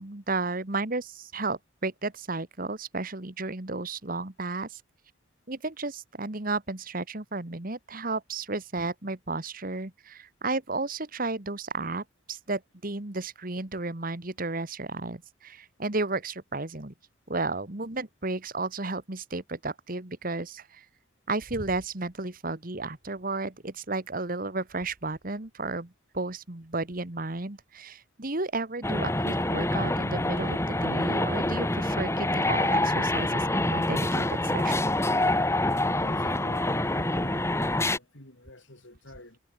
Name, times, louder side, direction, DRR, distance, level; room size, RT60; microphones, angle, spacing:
voice 1, 0.0-4.8 5.5-16.9 17.3-20.8 21.3-34.9, right 3 dB, 45° right, 1.7 m, -33 dB
sound 1, 28.8-38.0, left 1 dB, 15° left, 2.2 m, -26 dB
voice 2, 35.8-39.4, left 1 dB, 70° left, 6.6 m, -47 dB
head